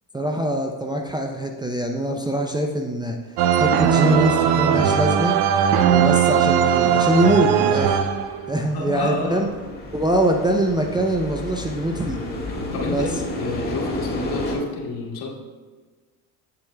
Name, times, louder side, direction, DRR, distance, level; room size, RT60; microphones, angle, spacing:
voice 1, 0.1-3.2 3.6-5.4 5.9-8.0 8.5-9.5 9.9-12.2 12.9-13.1, right 1 dB, 10° right, 1 dB, 0.5 m, -23 dB
sound 1, 3.4-8.6, right 8 dB, 65° right, 0.6 m, -19 dB
sound 2, 7.3-14.6, left 1 dB, 20° left, 1.7 m, -32 dB
voice 2, 8.7-9.8 12.7-15.3, left 3 dB, 55° left, -2 dB, 1.9 m, -30 dB
8.6 x 7.2 x 2.3 m, 1.4 s
supercardioid pair, 85°, 43 cm